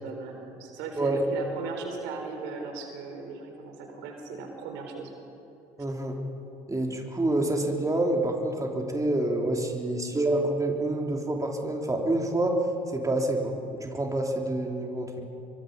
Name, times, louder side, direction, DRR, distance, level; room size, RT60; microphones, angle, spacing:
voice 1, 0.0-5.1, right 4 dB, 65° right, 3 dB, 4.1 m, -37 dB
voice 2, 5.8-6.2 6.7-12.6 12.9-13.5 13.8-15.3, right 1 dB, 15° right, 1 dB, 3.5 m, -27 dB
27.5 x 23.5 x 5.4 m, 3.0 s
hypercardioid pair, 60°, 20 cm